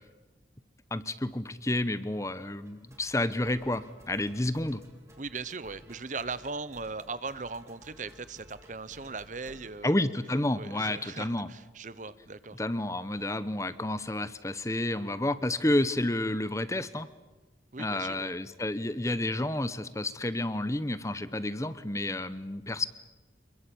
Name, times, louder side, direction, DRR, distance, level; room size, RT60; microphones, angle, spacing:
voice 1, 0.9-4.8 9.8-11.5 12.6-17.1 17.8-22.9, left 1 dB, 15° left, 14 dB, 0.9 m, -30 dB
sound 1, 2.1-10.7, equal, 15° right, 3.9 m, -56 dB
voice 2, 5.2-10.1 10.5-12.6 17.7-18.3, right 4 dB, 45° right, 16 dB, 1.0 m, -39 dB
27.0 x 22.0 x 8.7 m, 1.2 s
head